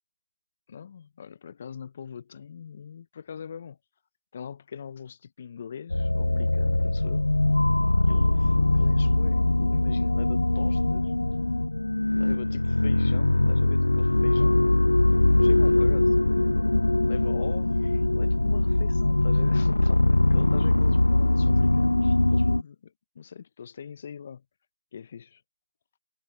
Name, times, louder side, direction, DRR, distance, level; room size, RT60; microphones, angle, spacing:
voice 1, 0.7-3.8 4.3-7.3 8.1-11.1 12.2-14.8 15.4-16.2 17.1-22.8 23.2-24.4 24.9-25.4, left 7 dB, 35° left, 0.7 m, -41 dB
sound 1, 5.9-22.6, left 2 dB, 80° left, 0.3 m, -22 dB
figure-of-eight pair, 155°, 0 cm